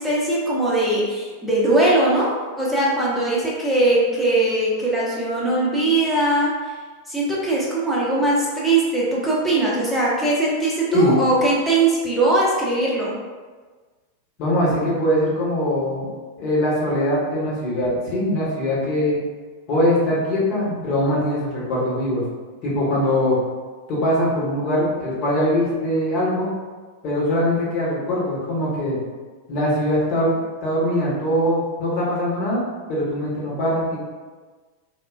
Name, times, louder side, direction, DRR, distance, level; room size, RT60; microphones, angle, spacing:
voice 1, 0.0-6.5 7.1-13.1, right 2 dB, ahead, -7 dB, 0.9 m, -20 dB
voice 2, 10.9-11.2 14.4-16.1 16.4-19.2 19.7-22.2 22.6-23.4 23.9-26.5 27.0-29.0 29.5-32.6 32.9-34.0, left 1 dB, 40° left, -6 dB, 1.1 m, -22 dB
3.6 x 2.2 x 2.4 m, 1.4 s
figure-of-eight pair, 90°, 0 cm